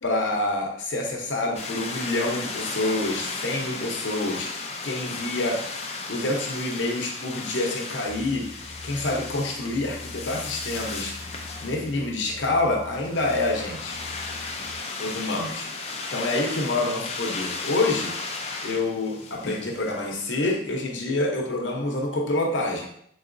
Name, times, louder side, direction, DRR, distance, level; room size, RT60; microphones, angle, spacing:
voice 1, 0.0-5.6 6.1-14.0 15.0-18.1 18.6-22.9, left 2 dB, 80° left, 0 dB, 0.8 m, -27 dB
sound 1, 1.5-20.5, left 3 dB, 35° left, 0.5 m, -35 dB
sound 2, 8.0-14.8, left 3 dB, 30° right, 0.9 m, -44 dB
4.0 x 3.8 x 2.6 m, 0.68 s
head